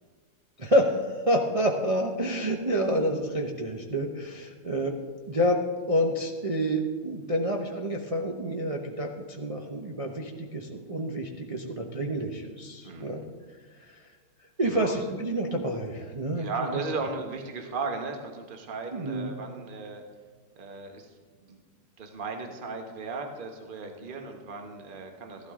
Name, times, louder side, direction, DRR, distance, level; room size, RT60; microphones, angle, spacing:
voice 1, 0.6-4.9 5.3-13.2 13.8-14.0 14.6-16.8 18.9-19.3, equal, 50° right, 1 dB, 0.4 m, -28 dB
voice 2, 12.8-13.2 14.6-15.0 16.4-20.0 20.6-21.1 21.4-21.6 22.0-25.5, right 4 dB, 30° right, 4 dB, 1.1 m, -36 dB
14.5 x 12.0 x 3.7 m, 1.5 s
omnidirectional pair, 2.0 m